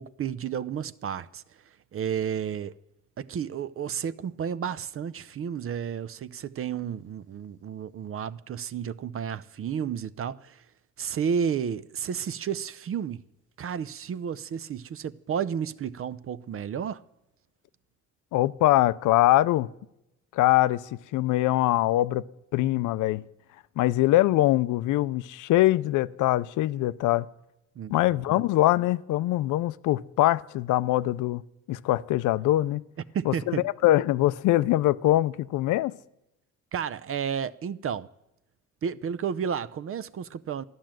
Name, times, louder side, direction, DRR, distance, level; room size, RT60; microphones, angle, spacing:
voice 1, 0.0-1.4 1.9-2.7 3.2-10.6 11.0-13.2 13.6-17.0 27.8-28.0 28.3-28.4 33.1-33.6 36.7-38.1 38.8-40.6, right 7 dB, 45° right, 0.6 m, -32 dB
voice 2, 18.3-19.7 20.3-22.2 22.5-23.2 23.8-27.2 27.9-31.4 31.7-32.8 33.3-35.9, left 15 dB, 85° left, 0.6 m, -23 dB
13.5 x 10.5 x 7.6 m
cardioid pair, 90°, 30 cm